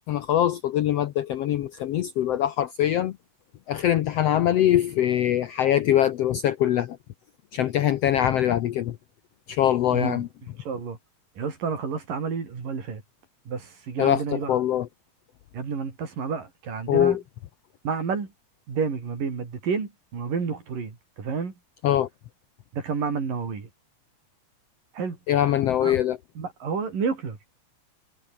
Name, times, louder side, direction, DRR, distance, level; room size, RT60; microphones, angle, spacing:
voice 1, 0.1-3.2 3.7-7.0 7.5-9.0 9.5-10.3 14.0-14.9 16.9-17.2 21.8-22.1 25.3-26.2, left 11 dB, 75° left, 1.5 m, -23 dB
voice 2, 9.9-10.3 10.6-11.0 11.4-13.0 13.5-14.6 15.5-17.2 17.8-18.3 18.7-21.5 22.7-23.7 24.9-25.2 25.8-26.0 26.4-27.4, right 5 dB, 80° right, 6.4 m, -30 dB
omnidirectional pair, 3.8 m